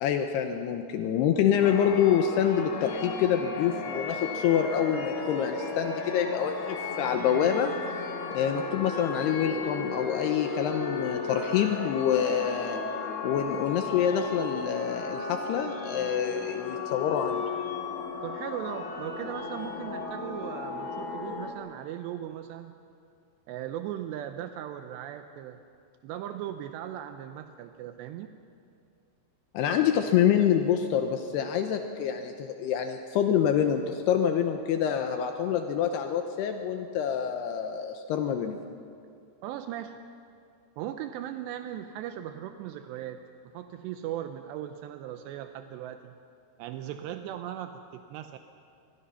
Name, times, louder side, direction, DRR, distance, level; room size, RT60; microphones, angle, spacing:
voice 1, 0.0-7.7 8.3-12.8 13.2-17.4 29.5-38.6, left 9 dB, 80° left, 5 dB, 2.8 m, -26 dB
sound 1, 1.6-21.5, left 4 dB, 40° left, 2.1 m, -35 dB
voice 2, 18.2-22.8 23.5-25.6 26.0-28.3 39.4-40.0 40.8-46.1 46.6-48.4, right 11 dB, 85° right, 7 dB, 2.9 m, -38 dB
25.5 x 21.5 x 5.7 m, 2.4 s
omnidirectional pair, 5.1 m